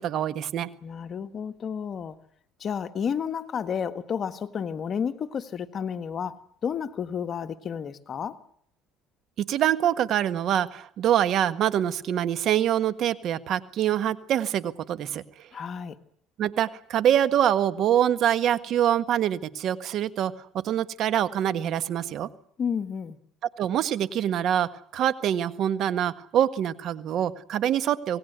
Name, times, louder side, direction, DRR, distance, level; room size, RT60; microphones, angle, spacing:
voice 1, 0.0-0.7 9.4-15.2 16.4-20.3 20.6-22.3 23.6-28.2, right 10 dB, 55° right, 1.5 m, -25 dB
voice 2, 0.8-2.2 2.6-8.4 15.5-16.0 22.6-23.2, left 7 dB, 40° left, 1.6 m, -31 dB
27.0 x 19.0 x 8.1 m
cardioid pair, 110°, 0 cm